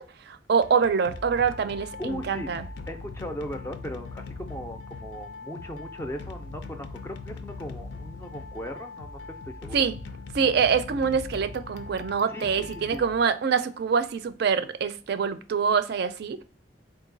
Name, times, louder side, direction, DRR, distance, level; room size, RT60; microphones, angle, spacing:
voice 1, 0.0-2.7 9.7-9.9 10.3-16.4, right 6 dB, 65° right, 0.4 m, -25 dB
sound 1, 0.6-13.7, left 3 dB, 85° left, 0.5 m, -41 dB
voice 2, 2.0-2.5 2.9-9.8 12.3-13.0, equal, 15° left, 0.3 m, -38 dB
3.8 x 2.6 x 3.8 m
head